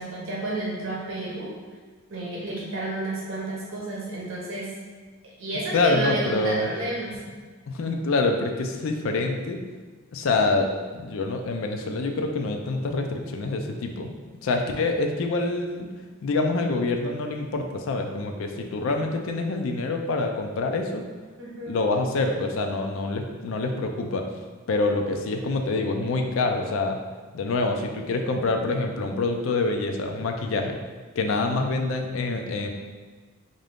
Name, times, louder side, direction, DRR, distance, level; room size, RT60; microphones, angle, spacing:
voice 1, 0.0-1.5 2.1-4.8 5.4-7.2 21.4-21.8, right 2 dB, 65° right, -5 dB, 0.9 m, -31 dB
voice 2, 5.7-6.7 7.7-9.6 10.1-14.1 14.4-15.9 16.2-21.0 21.7-24.3 24.7-27.0 27.3-30.8 31.2-32.7, left 3 dB, 70° left, 4 dB, 0.4 m, -26 dB
3.7 x 2.6 x 3.4 m, 1.4 s
head